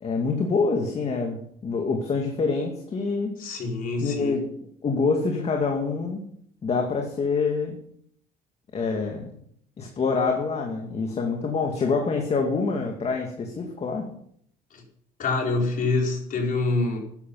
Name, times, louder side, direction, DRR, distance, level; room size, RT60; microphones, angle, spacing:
voice 1, 0.0-3.3 4.0-4.5 4.8-6.2 6.6-7.8 8.7-9.3 9.8-14.1, left 4 dB, 40° left, 2 dB, 2.3 m, -26 dB
voice 2, 3.4-4.4 14.7-14.8 15.2-17.0, left 3 dB, 55° left, 0 dB, 4.6 m, -26 dB
13.5 x 10.5 x 5.5 m, 0.66 s
cardioid pair, 110°, 17 cm